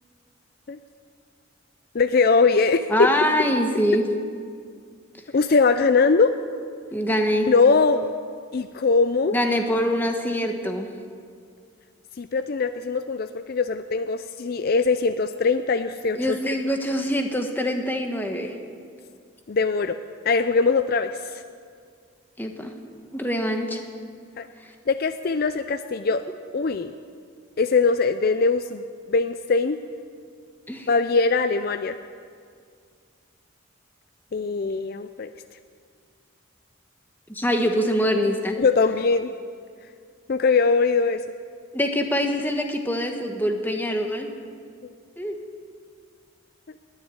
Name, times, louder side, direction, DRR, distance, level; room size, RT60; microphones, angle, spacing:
voice 1, 1.9-2.8 5.3-6.3 7.5-8.1 8.5-9.3 12.2-16.4 19.5-20.0 20.2-21.4 24.4-24.5 24.9-26.2 26.5-26.9 27.6-29.8 30.9-32.0 34.3-35.3 38.6-39.3 40.3-41.2, left 4 dB, 50° left, 10 dB, 0.4 m, -21 dB
voice 2, 2.9-4.0 6.9-7.5 9.3-10.9 16.2-18.6 22.4-22.7 23.1-23.8 24.6-24.7 30.7-30.9 37.3-38.6 41.7-44.3 45.2-45.3, equal, 10° left, 4 dB, 1.2 m, -24 dB
20.5 x 7.4 x 9.0 m, 2.2 s
head